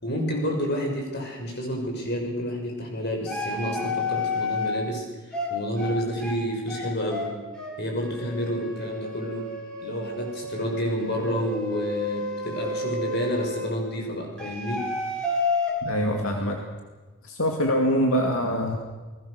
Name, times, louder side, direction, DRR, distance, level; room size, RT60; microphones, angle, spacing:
voice 1, 0.0-7.3 7.8-9.5 9.8-14.8, equal, 50° left, 1 dB, 6.6 m, -29 dB
sound 1, 3.3-4.7 5.3-5.5 5.8-5.9 6.2-6.4 6.7-6.8 7.1-7.3 7.5-7.7 8.0-13.7 14.4-15.7, left 2 dB, 5° left, 6.5 m, -31 dB
voice 2, 15.8-16.6 17.2-18.7, equal, 75° left, 2 dB, 2.4 m, -24 dB
29.0 x 21.0 x 6.7 m, 1.3 s
head